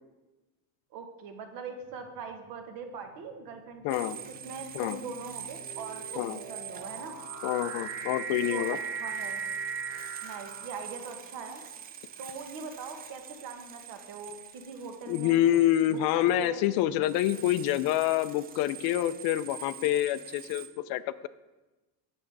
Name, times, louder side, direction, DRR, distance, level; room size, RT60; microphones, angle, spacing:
voice 1, 0.9-7.1 8.3-8.7 9.0-9.4 10.2-11.6 12.2-15.5 15.9-16.7, right 5 dB, 55° right, 5 dB, 1.3 m, -42 dB
sound 1, 1.9-2.3 3.1-11.3, right 5 dB, 85° right, 1.5 m, -39 dB
voice 2, 3.8-4.2 4.7-5.0 6.2-6.4 7.4-8.8 15.1-21.3, left 13 dB, 65° left, 15 dB, 0.5 m, -27 dB
sound 2, 3.9-20.7, right 8 dB, 25° right, 0.5 m, -45 dB
8.9 x 7.3 x 4.6 m, 1.1 s
cardioid pair, 160°, 41 cm